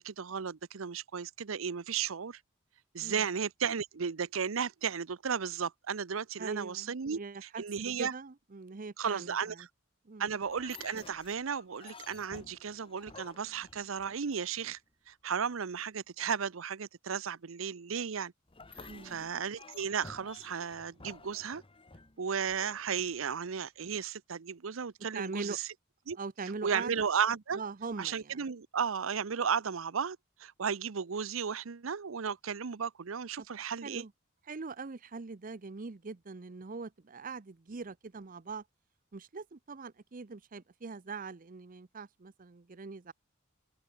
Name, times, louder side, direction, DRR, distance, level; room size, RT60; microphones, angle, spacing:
voice 1, 0.0-2.4 2.9-8.1 9.0-9.5 10.2-14.8 15.1-18.3 18.8-21.6 22.2-25.6 26.1-26.2 26.6-27.6 28.0-34.0, right 6 dB, 85° right, 0.7 m, -34 dB
voice 2, 6.4-7.6 8.0-9.7 10.0-10.3 18.9-19.2 25.1-25.6 26.2-27.1 27.5-28.5 33.6-34.1 34.4-38.7 39.1-43.1, right 4 dB, 45° right, 0.7 m, -42 dB
sound 1, 10.4-14.7 18.5-23.6, left 3 dB, 25° left, 1.4 m, -53 dB
head